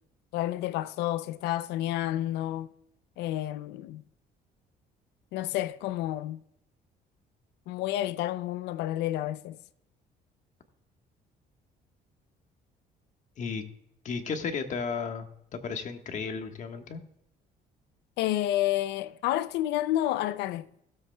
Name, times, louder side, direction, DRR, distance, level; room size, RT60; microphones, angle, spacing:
voice 1, 0.3-2.7 3.2-4.0 5.3-6.4 7.7-9.6 18.2-20.7, left 14 dB, 85° left, 0.5 m, -30 dB
voice 2, 14.0-17.0, left 5 dB, 45° left, 1.4 m, -34 dB
17.0 x 7.8 x 2.3 m
cardioid pair, 110°, 17 cm